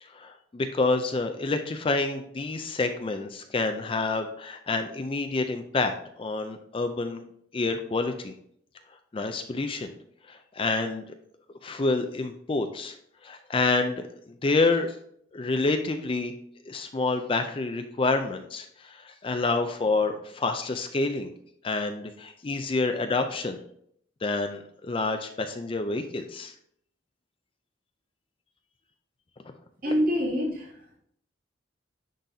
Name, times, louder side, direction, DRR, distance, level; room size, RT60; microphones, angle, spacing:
voice 1, 0.0-7.2 7.5-8.3 9.1-9.9 10.3-11.0 11.6-13.0 13.2-15.0 15.3-16.3 16.7-21.3 21.6-23.6 24.2-26.5, left 3 dB, 25° left, 7 dB, 0.4 m, -28 dB
voice 2, 29.8-31.0, equal, 45° right, -5 dB, 2.4 m, -26 dB
10.0 x 4.0 x 2.7 m, 0.69 s
head